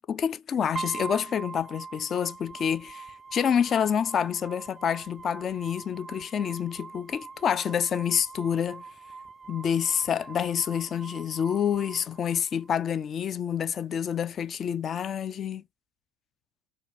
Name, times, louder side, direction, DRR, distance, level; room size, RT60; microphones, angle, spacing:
voice 1, 0.0-8.8 9.5-15.6, left 8 dB, 40° left, 0.3 m, -28 dB
sound 1, 0.7-12.8, right 4 dB, 25° right, 0.4 m, -43 dB
4.2 x 2.2 x 2.6 m
hypercardioid pair, 70°, 0 cm